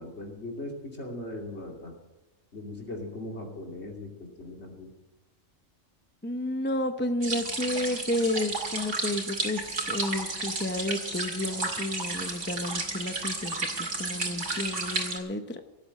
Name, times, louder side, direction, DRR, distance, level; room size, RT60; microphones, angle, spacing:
voice 1, 0.0-1.9 2.5-4.9, left 1 dB, 60° left, 1 dB, 3.0 m, -39 dB
voice 2, 6.2-15.6, left 1 dB, 10° left, 8 dB, 0.7 m, -31 dB
sound 1, 7.2-15.2, right 3 dB, 65° right, 2.7 m, -32 dB
17.0 x 7.9 x 7.5 m, 1.0 s
omnidirectional pair, 1.3 m